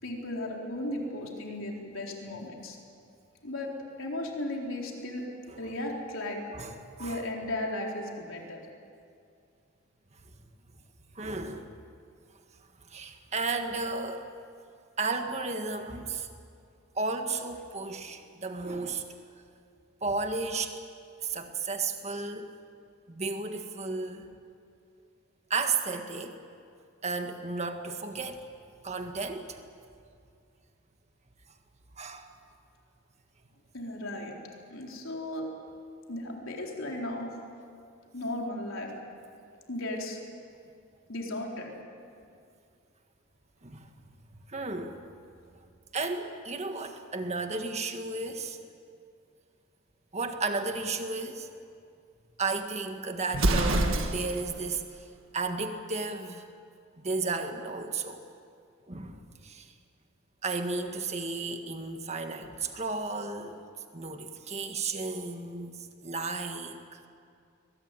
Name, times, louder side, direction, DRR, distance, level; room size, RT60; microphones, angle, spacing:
voice 1, 0.0-2.8 3.4-3.7 4.0-5.3 5.6-6.4 7.0-8.6 33.7-34.3 34.7-35.5 36.1-37.3 38.1-38.9 39.7-40.2 41.1-41.7, left 1 dB, 65° left, 0 dB, 4.1 m, -35 dB
voice 2, 6.5-7.2 11.1-11.7 12.9-14.3 15.0-16.3 16.9-19.0 20.0-20.7 21.2-22.5 23.1-24.3 25.5-26.4 27.0-28.4 28.8-29.6 32.0-32.3 43.6-43.9 44.3-45.0 45.9-48.6 50.1-51.5 52.4-55.0 55.3-56.4 57.0-58.2 58.9-59.7 60.4-63.6 63.9-67.0, right 3 dB, 30° right, 5 dB, 1.7 m, -33 dB
Explosion, 53.3-54.5, right 1 dB, 65° right, 1.8 m, -26 dB
22.5 x 21.0 x 9.1 m, 2.4 s
head